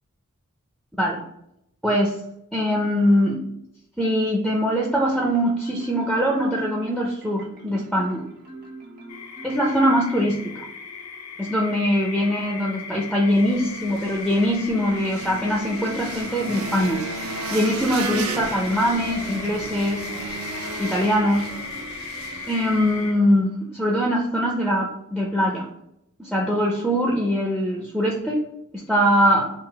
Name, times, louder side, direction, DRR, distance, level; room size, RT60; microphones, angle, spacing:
voice 1, 1.8-2.2 2.5-3.4 4.0-8.2 9.4-10.7 11.4-17.0 17.5-20.1 20.8-21.5 22.5-25.7 26.2-28.4 28.7-29.5, equal, ahead, -1 dB, 0.5 m, -22 dB
Marimba xylophone, 5.1-10.3, right 2 dB, 45° right, 1.0 m, -42 dB
sound 1, 9.1-23.1, left 5 dB, 80° left, 0.5 m, -37 dB
sound 2, 13.3-23.1, right 3 dB, 70° right, 0.5 m, -34 dB
3.8 x 2.4 x 4.6 m, 0.78 s
head